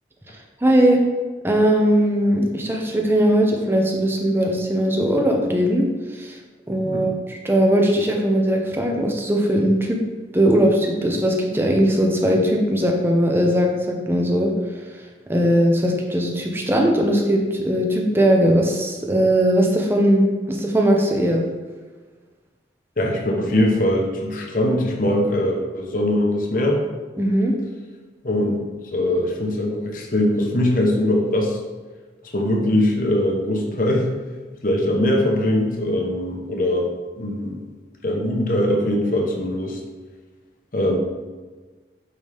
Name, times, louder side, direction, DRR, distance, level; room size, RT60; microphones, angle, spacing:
voice 1, 0.6-1.0 1.4-6.4 6.7-10.0 10.3-14.5 15.3-21.4 27.2-27.5, equal, 15° right, 1 dB, 0.8 m, -19 dB
voice 2, 23.0-26.8 28.2-28.6 28.9-31.6 32.3-34.1 34.6-36.9 37.2-37.6 38.0-39.8 40.7-41.0, left 1 dB, 50° left, 0 dB, 1.1 m, -21 dB
8.6 x 4.0 x 3.5 m, 1.4 s
head